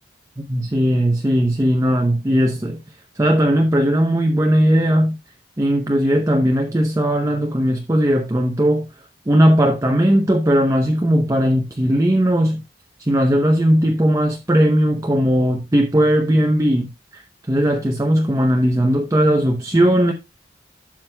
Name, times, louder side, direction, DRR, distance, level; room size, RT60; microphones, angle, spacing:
voice 1, 0.4-2.8 3.2-5.2 5.6-8.9 9.3-12.6 13.0-20.1, equal, 20° right, 0.7 m, -18 dB
12.0 x 7.3 x 2.2 m
head